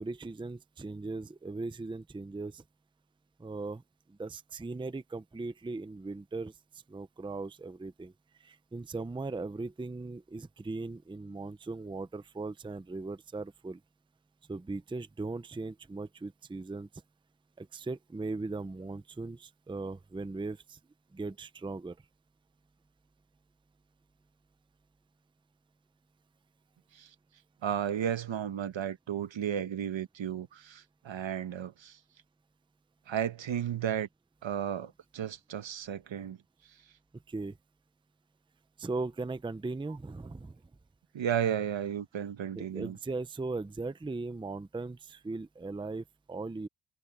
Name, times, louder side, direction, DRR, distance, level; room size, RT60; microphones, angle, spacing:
voice 1, 0.0-2.6 3.4-3.8 4.1-8.1 8.4-13.8 14.5-16.9 17.6-20.8 21.1-22.0 37.3-37.6 38.8-40.6 42.5-46.7, right 3 dB, 10° right, 0.5 m, -38 dB
voice 2, 27.6-32.0 33.1-34.1 34.4-36.4 41.1-43.0, right 9 dB, 70° right, 1.1 m, -33 dB
wide cardioid pair, 165°, 47 cm